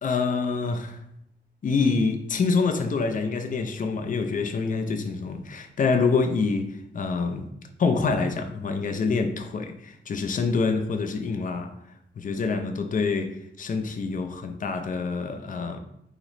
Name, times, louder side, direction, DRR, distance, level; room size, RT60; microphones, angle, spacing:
voice 1, 0.0-1.0 1.6-7.5 7.8-11.7 12.2-15.8, left 4 dB, 45° left, 0.4 m, -26 dB
2.9 x 2.0 x 3.8 m
wide cardioid pair, 115°, 19 cm